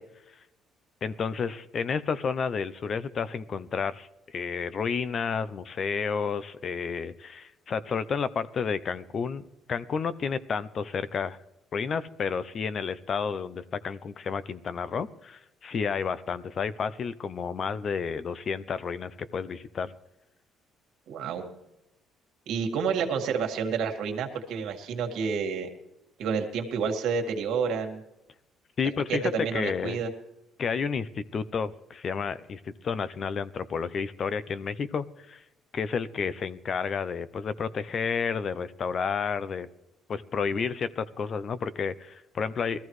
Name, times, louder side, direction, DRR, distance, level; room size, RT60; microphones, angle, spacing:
voice 1, 1.0-4.1 4.3-9.4 9.7-11.4 11.7-19.9 28.8-30.0 30.6-35.4 35.7-39.7 40.1-42.8, left 6 dB, 35° left, 15 dB, 0.5 m, -31 dB
voice 2, 21.1-21.4 22.5-25.7 26.2-28.0 29.1-30.1, right 6 dB, 70° right, 4 dB, 1.9 m, -29 dB
21.5 x 14.0 x 3.2 m, 0.92 s
cardioid pair, 155°, 0 cm